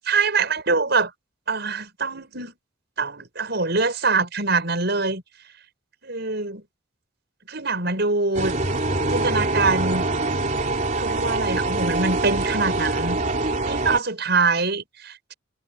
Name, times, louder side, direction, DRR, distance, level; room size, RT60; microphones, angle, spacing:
voice 1, 0.1-1.1 1.5-2.6 3.0-5.2 6.0-6.6 7.5-8.6 9.1-10.1 11.0-13.2 13.6-15.3, right 4 dB, 55° right, 7.3 m, -24 dB
sound 1, 8.3-14.0, right 2 dB, 40° right, 3.6 m, -24 dB
head